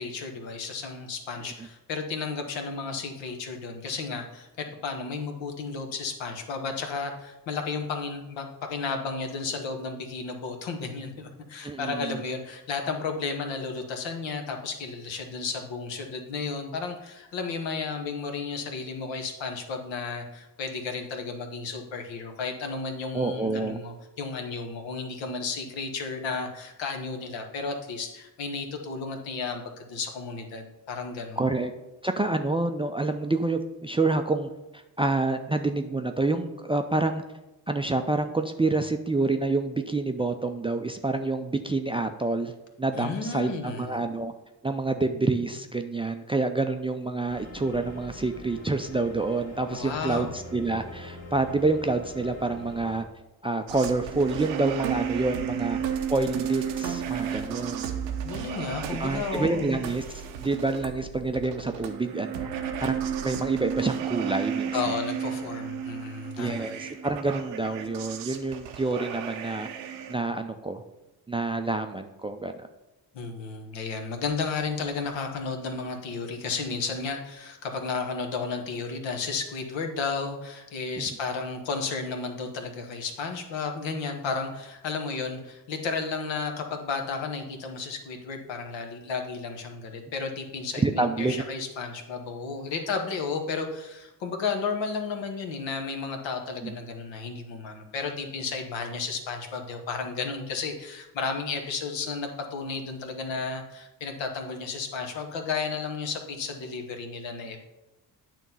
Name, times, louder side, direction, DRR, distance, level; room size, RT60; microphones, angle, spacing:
voice 1, 0.0-31.5 43.0-44.0 49.7-50.3 58.2-59.8 64.7-66.8 73.1-107.6, left 4 dB, 65° left, 4 dB, 1.1 m, -33 dB
voice 2, 11.6-12.2 23.1-23.8 31.4-31.7 32.0-37.2 37.7-42.5 42.8-44.3 44.6-53.1 53.4-55.8 56.1-57.9 58.9-60.0 60.4-62.5 62.8-64.9 66.4-69.7 70.1-70.8 71.3-72.7 81.0-81.1 90.8-91.4 96.6-96.7, right 3 dB, 10° right, 7 dB, 0.4 m, -28 dB
sound 1, 47.3-53.0, left 2 dB, 35° left, 1.7 m, -43 dB
sound 2, 53.7-70.1, right 8 dB, 90° right, 0.7 m, -33 dB
8.9 x 3.0 x 5.4 m, 0.99 s
hypercardioid pair, 45°, 48 cm